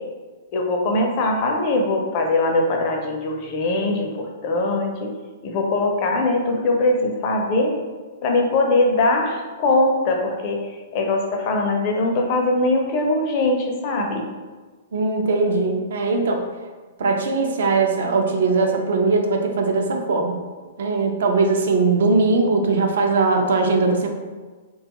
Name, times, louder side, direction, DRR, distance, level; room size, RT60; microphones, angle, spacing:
voice 1, 0.5-5.1 5.4-7.8 8.2-14.3, left 2 dB, 40° left, 1 dB, 0.4 m, -21 dB
voice 2, 14.9-16.4 17.0-20.4 20.8-24.1, right 3 dB, 75° right, 3 dB, 0.4 m, -20 dB
2.4 x 2.3 x 2.9 m, 1.4 s
hypercardioid pair, 140°, 0 cm